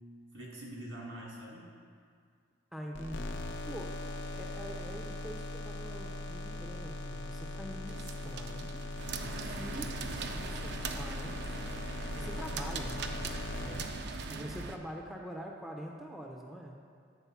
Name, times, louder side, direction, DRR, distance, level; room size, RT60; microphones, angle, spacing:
voice 1, 0.3-1.7 9.2-9.7 13.9-14.3, right 1 dB, 75° right, -3 dB, 1.8 m, -46 dB
voice 2, 2.7-4.0 4.3-8.8 9.5-10.0 10.3-11.6 12.1-13.0 13.6-13.9 14.3-16.8, equal, ahead, 0 dB, 0.4 m, -44 dB
sound 1, 2.9-14.6, left 2 dB, 70° left, 0.6 m, -40 dB
sound 2, 7.9-14.8, right 4 dB, 55° right, 0.4 m, -41 dB
8.2 x 4.1 x 5.7 m, 2.2 s
head